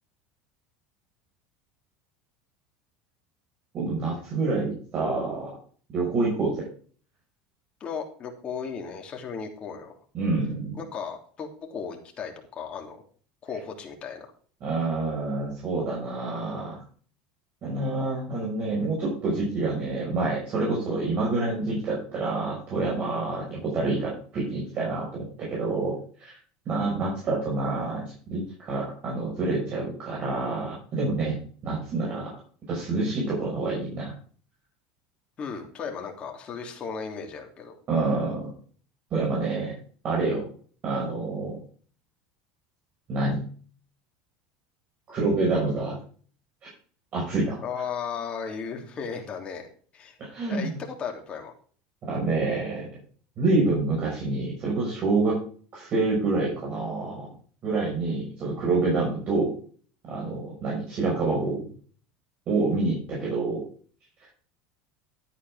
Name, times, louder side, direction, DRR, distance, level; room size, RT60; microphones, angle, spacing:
voice 1, 3.7-5.5 5.9-6.6 10.1-10.8 14.6-16.8 17.6-26.4 26.7-31.4 31.6-32.3 32.7-34.1 37.9-38.5 39.1-39.7 40.0-40.4 40.8-41.6 43.1-43.4 45.1-46.0 47.1-47.6 50.2-50.7 52.1-52.9 53.4-55.4 55.7-57.3 57.6-59.5 60.1-61.7 62.5-63.6, right 3 dB, 40° right, -4 dB, 6.0 m, -27 dB
voice 2, 7.8-10.0 10.7-13.0 13.4-14.3 35.4-37.8 47.6-50.2 50.5-51.5, left 6 dB, 35° left, 2 dB, 3.3 m, -35 dB
12.5 x 9.5 x 3.8 m, 0.43 s
supercardioid pair, 125°, 4 cm